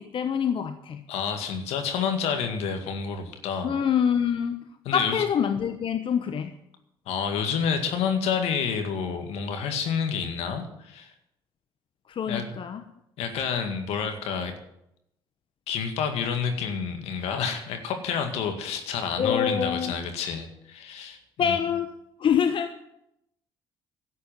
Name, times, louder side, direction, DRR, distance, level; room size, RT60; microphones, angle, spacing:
voice 1, 0.0-1.0 3.6-6.5 12.1-12.8 19.2-19.9 21.4-22.8, left 8 dB, 55° left, 9 dB, 1.0 m, -26 dB
voice 2, 1.1-3.8 4.9-5.2 7.1-11.1 12.3-12.5 13.2-14.5 15.7-21.6, left 6 dB, 75° left, 6 dB, 2.0 m, -29 dB
11.5 x 8.3 x 9.3 m, 0.81 s
hypercardioid pair, 60°, 11 cm